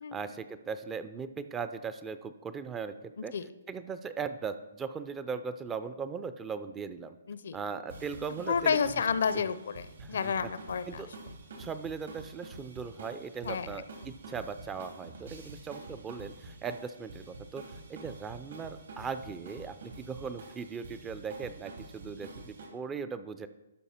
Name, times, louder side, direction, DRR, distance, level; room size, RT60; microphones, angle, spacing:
voice 1, 0.1-3.3 3.7-7.2 7.5-8.8 10.0-10.5 10.9-11.1 11.6-23.5, right 5 dB, 10° right, 11 dB, 0.4 m, -39 dB
sound 1, 7.9-22.7, right 2 dB, 70° right, 2.8 m, -48 dB
voice 2, 8.5-10.8 13.5-13.7, left 6 dB, 65° left, 14 dB, 0.5 m, -30 dB
12.0 x 5.4 x 4.3 m, 1.0 s
hypercardioid pair, 155°, 0 cm